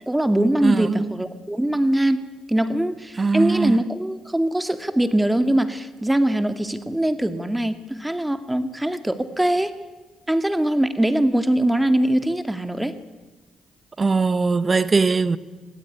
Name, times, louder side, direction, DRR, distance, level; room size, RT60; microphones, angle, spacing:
voice 1, 0.1-2.2 2.5-9.7 10.3-12.9, right 1 dB, 10° right, 2.2 m, -22 dB
voice 2, 0.6-1.2 3.2-3.8 14.0-15.4, right 4 dB, 40° right, 1.5 m, -20 dB
26.0 x 21.5 x 9.6 m
hypercardioid pair, 45°, 0 cm